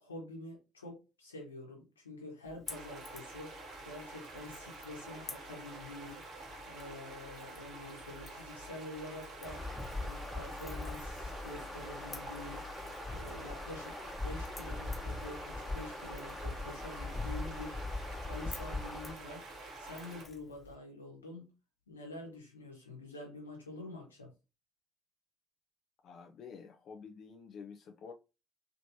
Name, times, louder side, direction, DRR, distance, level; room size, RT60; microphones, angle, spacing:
voice 1, 0.0-3.5 3.8-6.2 6.6-12.6 13.1-17.9 18.2-21.5 21.9-24.3, left 2 dB, 85° left, 1.1 m, -47 dB
Crackle / Crack, 2.4-20.8, left 4 dB, 35° left, 1.3 m, -53 dB
sound 1, 2.7-20.3, right 3 dB, 60° right, 1.5 m, -49 dB
sound 2, 9.4-19.2, left 2 dB, 15° left, 0.9 m, -41 dB
voice 2, 26.0-28.1, left 6 dB, 55° left, 0.4 m, -49 dB
3.1 x 3.0 x 2.7 m
figure-of-eight pair, 50°, 0 cm